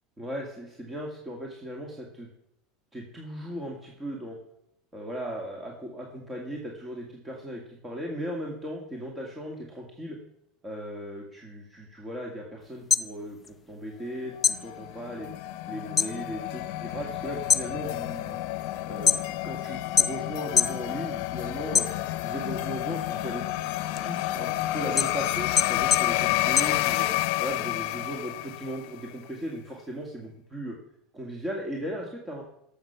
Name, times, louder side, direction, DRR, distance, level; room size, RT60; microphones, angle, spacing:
voice 1, 0.2-2.3 2.9-4.4 4.9-10.2 10.6-15.3 15.7-18.4 18.8-21.9 22.2-23.4 24.0-27.1 27.4-30.8 31.1-32.4, equal, 20° right, 0 dB, 2.1 m, -37 dB
sound 1, 12.7-14.1 14.4-16.2 16.5-17.0 17.4-19.5 20.0-20.8 21.2-22.4 22.8-27.4, left 7 dB, 20° left, 0.6 m, -26 dB
sound 2, 14.3-29.0, left 16 dB, 70° left, 0.7 m, -30 dB
13.0 x 7.0 x 5.8 m, 0.79 s
supercardioid pair, 115°, 0 cm